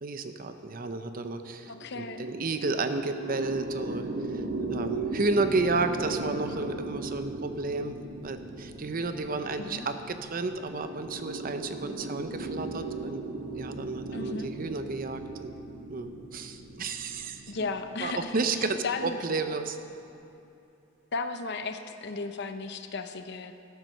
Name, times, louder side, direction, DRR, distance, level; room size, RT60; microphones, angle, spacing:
voice 1, 0.0-4.4 4.7-13.2 13.5-15.5 15.9-17.7 18.0-19.8, right 3 dB, 45° right, 8 dB, 0.7 m, -32 dB
sound 1, 1.6-19.1, right 2 dB, 60° right, 1.2 m, -38 dB
voice 2, 1.7-2.3 9.6-9.9 14.1-14.5 17.5-19.2 21.1-23.5, left 4 dB, 55° left, 8 dB, 0.7 m, -35 dB
12.5 x 9.3 x 6.5 m, 2.8 s
head